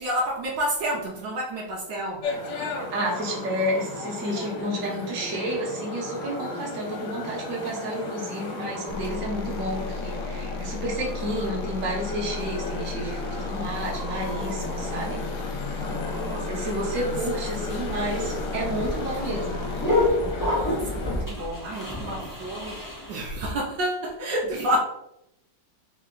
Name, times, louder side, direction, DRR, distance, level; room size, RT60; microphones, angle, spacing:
voice 1, 0.0-2.3 15.8-17.9 20.2-24.8, right 1 dB, 70° right, -3 dB, 1.3 m, -31 dB
sound 1, 2.2-21.2, left 2 dB, 60° left, 1.6 m, -35 dB
voice 2, 2.9-15.2 16.3-19.6, right 1 dB, 50° right, -2 dB, 1.3 m, -30 dB
sound 2, 8.9-20.1, left 4 dB, 85° left, 0.8 m, -35 dB
sound 3, 18.0-23.3, left 2 dB, 20° left, 0.6 m, -28 dB
3.7 x 3.0 x 3.8 m, 0.83 s
omnidirectional pair, 2.1 m